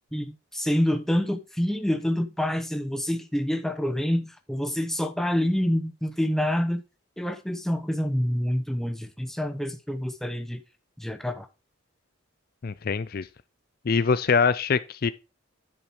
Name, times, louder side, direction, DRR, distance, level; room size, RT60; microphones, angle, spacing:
voice 1, 0.1-6.8 7.2-10.6 11.0-11.5, equal, ahead, 0.7 m, -27 dB
voice 2, 12.6-13.3 13.9-15.1, left 5 dB, 45° left, 0.4 m, -23 dB
10.0 x 6.0 x 4.5 m
head